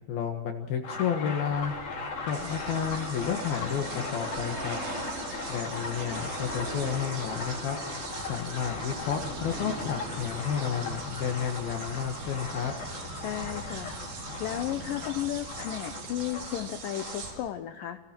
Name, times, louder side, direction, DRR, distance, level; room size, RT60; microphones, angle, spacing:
voice 1, 0.1-1.7 2.2-4.8 5.5-7.8 8.2-12.7, left 8 dB, 65° left, 3 dB, 3.2 m, -31 dB
sound 1, 0.8-17.3, left 4 dB, 50° left, 4.5 m, -39 dB
sound 2, 1.4-16.7, right 1 dB, 50° right, 8.8 m, -41 dB
sound 3, 2.3-17.3, right 5 dB, 85° right, 5.9 m, -43 dB
voice 2, 13.2-14.0 14.4-18.0, left 12 dB, 85° left, 8 dB, 2.0 m, -34 dB
30.0 x 24.5 x 4.5 m, 1.3 s
omnidirectional pair, 5.0 m